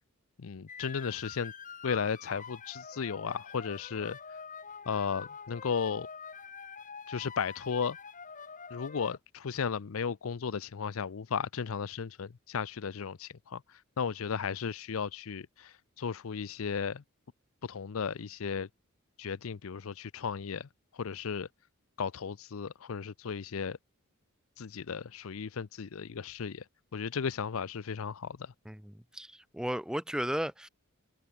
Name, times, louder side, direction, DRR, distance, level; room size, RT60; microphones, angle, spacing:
voice 1, 0.4-1.5 1.8-4.2 4.9-6.1 7.1-8.0 8.7-13.6 14.0-17.0 17.6-18.7 19.2-20.7 21.0-21.5 22.0-23.8 24.6-26.6 26.9-28.5, left 6 dB, 70° left, 0.5 m, -35 dB
sound 1, 0.7-9.2, left 6 dB, 35° left, 2.5 m, -46 dB
voice 2, 28.7-30.7, equal, 5° right, 0.6 m, -35 dB
head